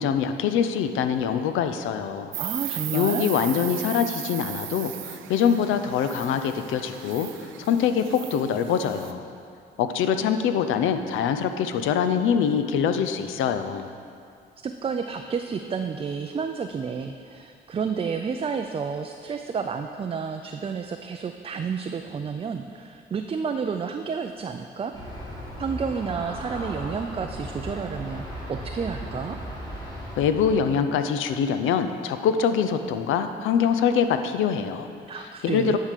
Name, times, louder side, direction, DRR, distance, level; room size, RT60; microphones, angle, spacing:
voice 1, 0.0-2.3 2.9-7.3 7.6-9.2 9.8-13.9 30.2-34.9 35.4-35.8, left 7 dB, 85° left, 9 dB, 0.5 m, -24 dB
Insect, 2.3-9.1, right 12 dB, 80° right, 0.5 m, -36 dB
voice 2, 2.4-3.3 14.6-24.9 25.6-29.4 35.1-35.8, right 6 dB, 30° right, 5 dB, 0.4 m, -30 dB
Aircraft, 24.9-30.7, equal, 20° left, 2.2 m, -36 dB
10.5 x 3.7 x 6.6 m, 2.4 s
cardioid pair, 90°, 20 cm